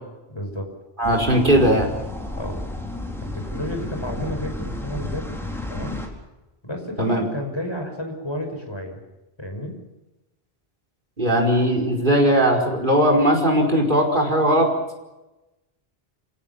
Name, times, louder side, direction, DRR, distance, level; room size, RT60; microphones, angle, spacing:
voice 1, 0.3-0.7 2.4-2.6 3.2-5.4 5.7-6.0 6.6-9.0 9.4-9.7, left 1 dB, 25° left, 3 dB, 6.0 m, -31 dB
sound 1, 1.0-6.1, left 1 dB, ahead, 4.4 m, -32 dB
voice 2, 1.0-1.9 7.0-7.3 11.2-14.7, equal, 50° right, 2 dB, 5.3 m, -18 dB
29.0 x 18.0 x 7.2 m, 1.0 s
omnidirectional pair, 1.1 m